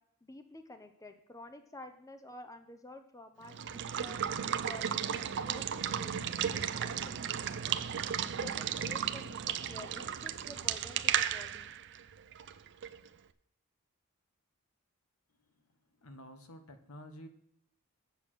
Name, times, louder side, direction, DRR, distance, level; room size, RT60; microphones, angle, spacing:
voice 1, 0.2-4.2 4.6-7.2 8.3-11.7, left 2 dB, 15° left, 7 dB, 0.7 m, -50 dB
Water / Water tap faucet / Liquid, 3.4-13.1, right 9 dB, 55° right, 0.5 m, -34 dB
voice 2, 16.0-17.3, equal, 70° left, 7 dB, 1.2 m, -50 dB
8.3 x 6.9 x 6.1 m, 0.75 s
head